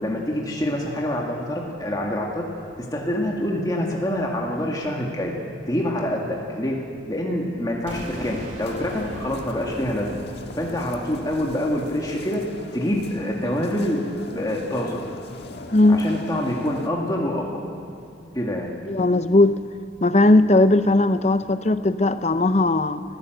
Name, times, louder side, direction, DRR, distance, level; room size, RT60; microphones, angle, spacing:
voice 1, 0.0-2.5 2.8-5.3 5.7-6.8 7.1-10.2 10.6-12.4 12.7-15.0 15.9-17.6 18.3-18.7, left 1 dB, 20° left, -2 dB, 2.1 m, -26 dB
sound 1, 7.9-13.6, equal, 40° right, 3.4 m, -40 dB
sound 2, 8.6-16.9, left 2 dB, 60° left, 1.6 m, -40 dB
voice 2, 15.7-16.0 18.9-19.6 20.0-23.0, left 2 dB, 35° left, 12 dB, 0.7 m, -18 dB
25.5 x 15.5 x 8.0 m, 2.4 s
head